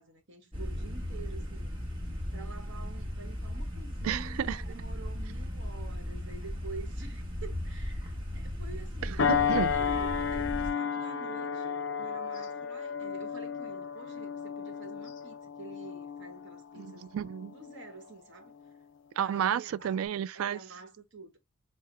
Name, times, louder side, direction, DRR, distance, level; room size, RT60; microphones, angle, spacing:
voice 1, 0.0-1.8 2.3-9.3 9.7-17.1 17.5-18.5 19.2-20.0 20.3-21.4, right 4 dB, 55° right, 1.1 m, -48 dB
sound 1, 0.5-10.7, left 1 dB, 25° right, 1.2 m, -37 dB
voice 2, 4.0-4.6 9.0-9.8 16.8-17.5 19.2-20.6, right 9 dB, 75° right, 0.3 m, -31 dB
sound 2, 9.2-18.0 18.5-18.7, left 7 dB, 60° left, 0.5 m, -33 dB
5.6 x 2.0 x 3.2 m
head